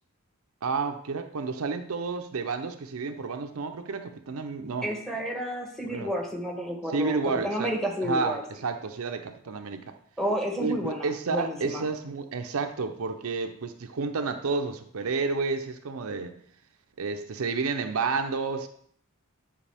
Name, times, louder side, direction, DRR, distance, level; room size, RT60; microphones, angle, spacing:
voice 1, 0.6-4.9 5.8-6.1 6.9-7.7 8.0-9.9 10.6-16.4 17.0-18.7, right 4 dB, 70° right, 7 dB, 0.6 m, -30 dB
voice 2, 4.8-8.4 10.2-11.8, equal, ahead, 1 dB, 1.1 m, -31 dB
9.8 x 4.9 x 3.4 m, 0.64 s
head